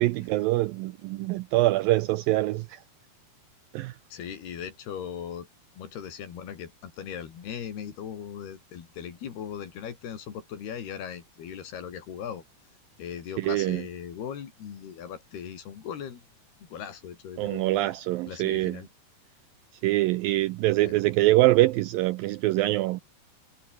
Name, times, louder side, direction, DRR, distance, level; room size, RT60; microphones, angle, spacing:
voice 1, 0.0-2.8 3.7-4.0 13.4-13.8 17.4-18.8 19.8-23.0, right 17 dB, 80° right, 2.1 m, -24 dB
voice 2, 4.1-5.5 5.8-12.4 13.0-16.2 16.6-17.9 18.2-18.9 20.8-20.9, left 8 dB, 75° left, 5.0 m, -39 dB
omnidirectional pair, 4.7 m